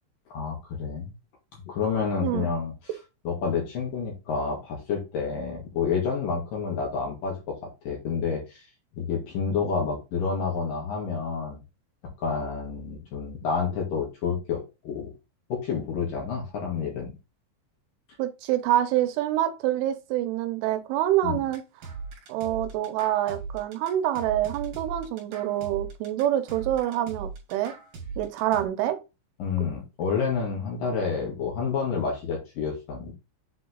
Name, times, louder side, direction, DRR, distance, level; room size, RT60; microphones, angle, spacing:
voice 1, 0.3-1.1 1.6-2.7 3.2-7.6 7.8-8.7 8.9-11.6 12.2-15.1 15.5-17.1 21.2-21.4 29.4-33.1, left 5 dB, 55° left, 3.2 m, -29 dB
voice 2, 18.2-21.6 22.3-27.7 28.2-29.0, right 12 dB, 90° right, 3.3 m, -26 dB
sound 1, 21.5-28.6, right 4 dB, 50° right, 3.7 m, -39 dB
8.2 x 3.9 x 3.9 m
omnidirectional pair, 5.6 m